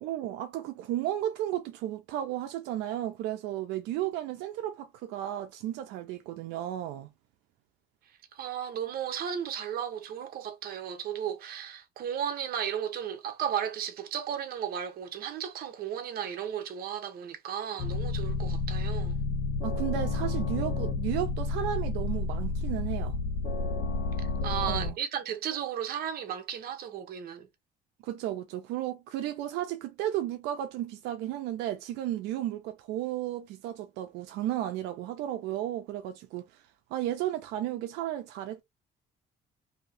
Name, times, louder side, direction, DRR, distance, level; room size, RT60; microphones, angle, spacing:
voice 1, 0.0-7.1 19.6-23.2 24.6-25.0 28.0-36.6 36.9-38.6, right 12 dB, 90° right, 0.5 m, -34 dB
voice 2, 8.3-19.2 24.2-27.5, right 9 dB, 60° right, 0.8 m, -34 dB
sound 1, 17.8-24.9, left 3 dB, 60° left, 1.1 m, -30 dB
2.7 x 2.7 x 3.2 m
cardioid pair, 110°, 17 cm